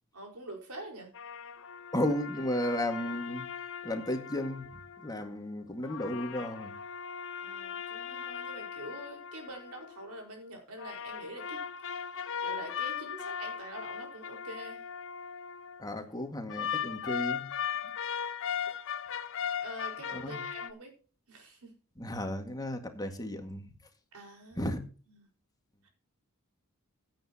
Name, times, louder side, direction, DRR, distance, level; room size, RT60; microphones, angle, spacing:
voice 1, 0.1-1.1 7.4-11.6 12.4-14.8 19.6-20.9 21.3-21.7 24.1-24.8 25.8-25.9, right 1 dB, 90° right, 2 dB, 4.8 m, -45 dB
sound 1, 1.1-5.3 5.8-10.2 10.8-15.8 16.5-20.7, left 8 dB, 60° left, 1.0 m, -38 dB
voice 2, 1.9-3.5 3.8-6.8 15.8-17.5 18.7-18.8 20.1-20.4 22.0-23.7 24.6-24.8, left 1 dB, 15° left, 5 dB, 1.9 m, -34 dB
16.0 x 9.1 x 2.9 m, 0.38 s
head